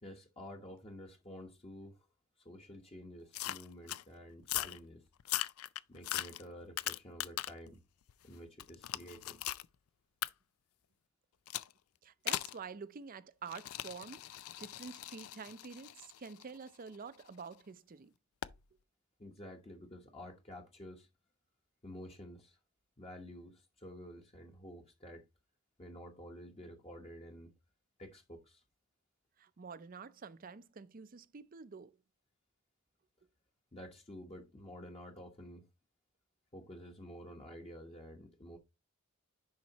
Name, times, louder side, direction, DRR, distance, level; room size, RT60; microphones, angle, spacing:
voice 1, 0.0-2.1 2.4-5.0 5.9-7.8 8.2-9.4 19.2-21.1 21.8-22.6 23.0-25.2 25.8-27.5 28.0-28.6 33.7-35.7 36.5-38.6, equal, 30° left, 1.0 m, -50 dB
sound 1, 3.3-4.0 4.4-4.8 5.2-7.7 8.1-9.7 10.2-10.3 11.5-11.7 12.3-12.6 13.5-17.4 18.4-18.6, left 14 dB, 85° left, 0.4 m, -40 dB
voice 2, 12.0-18.1 29.4-32.0, right 5 dB, 40° right, 0.5 m, -48 dB
10.5 x 4.3 x 2.9 m
head